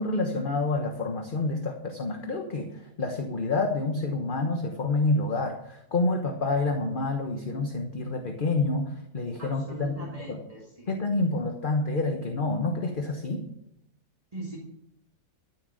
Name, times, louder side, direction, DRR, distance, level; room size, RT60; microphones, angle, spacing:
voice 1, 0.0-10.4 10.9-13.4, left 3 dB, 35° left, 3 dB, 1.2 m, -28 dB
voice 2, 9.4-10.9 14.3-14.6, right 2 dB, 20° right, -2 dB, 2.2 m, -40 dB
13.5 x 7.4 x 6.4 m, 0.79 s
omnidirectional pair, 1.9 m